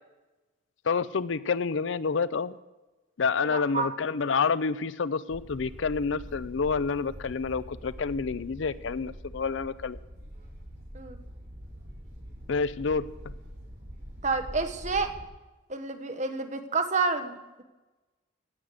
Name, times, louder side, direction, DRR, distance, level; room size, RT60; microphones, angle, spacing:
voice 1, 0.9-2.5 3.2-10.0 12.5-13.0, left 5 dB, 70° left, 17 dB, 0.5 m, -28 dB
voice 2, 3.4-3.9 10.9-11.2 14.2-15.2 15.7-17.6, right 4 dB, 35° right, 7 dB, 1.1 m, -29 dB
sound 1, 5.3-15.2, equal, 55° right, 3.8 m, -44 dB
17.0 x 6.4 x 8.1 m, 1.1 s
head